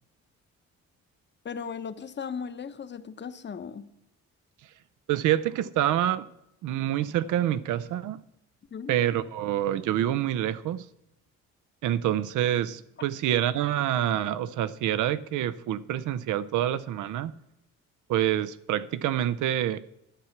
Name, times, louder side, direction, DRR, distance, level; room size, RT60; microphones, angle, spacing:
voice 1, 1.4-3.9 8.7-9.0, left 6 dB, 35° left, 0.9 m, -37 dB
voice 2, 5.1-6.3 6.6-8.2 8.9-10.9 11.8-17.3 18.1-19.8, right 12 dB, 80° right, 0.7 m, -27 dB
11.5 x 8.2 x 5.9 m
cardioid pair, 90°, 30 cm